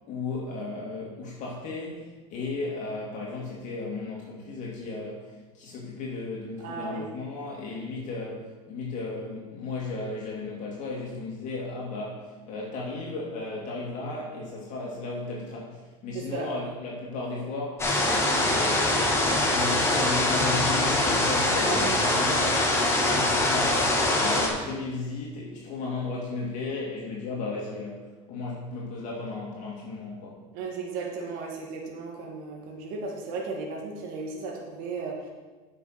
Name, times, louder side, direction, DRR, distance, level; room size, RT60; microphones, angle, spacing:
voice 1, 0.1-22.7 23.0-30.5, left 3 dB, 50° left, -4 dB, 2.6 m, -35 dB
voice 2, 6.6-7.1 16.1-16.5 21.7-22.1 30.5-35.3, right 4 dB, 65° right, -1 dB, 1.9 m, -35 dB
sound 1, 17.8-24.5, left 2 dB, 15° left, 2.4 m, -23 dB
9.3 x 6.0 x 5.8 m, 1.3 s
supercardioid pair, 110°, 16 cm